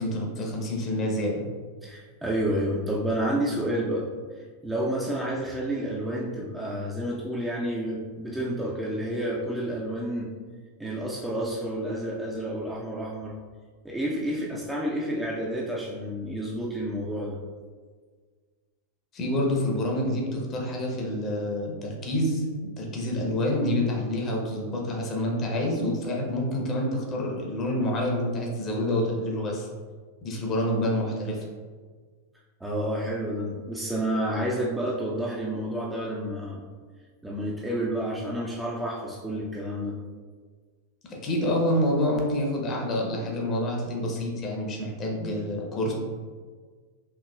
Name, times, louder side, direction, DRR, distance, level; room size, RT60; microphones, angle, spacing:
voice 1, 0.0-1.4 19.1-29.7 30.2-31.4 41.1-45.9, left 1 dB, 30° left, -1 dB, 0.9 m, -27 dB
voice 2, 1.8-4.1 4.6-10.3 10.8-13.3 13.8-17.4 32.6-36.7 37.2-40.0, right 1 dB, 5° right, -5 dB, 0.5 m, -30 dB
4.5 x 3.0 x 2.4 m, 1.5 s
figure-of-eight pair, 90°, 0 cm